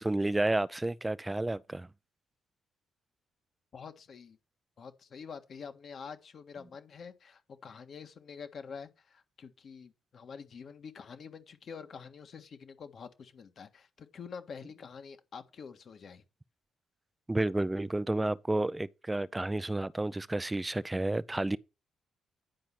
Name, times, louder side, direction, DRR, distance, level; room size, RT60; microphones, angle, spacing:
voice 1, 0.0-1.9 17.3-21.6, right 2 dB, 15° right, 0.6 m, -31 dB
voice 2, 3.7-4.4 4.8-16.2, left 6 dB, 55° left, 1.6 m, -47 dB
10.5 x 5.0 x 5.9 m
cardioid pair, 85°, 0 cm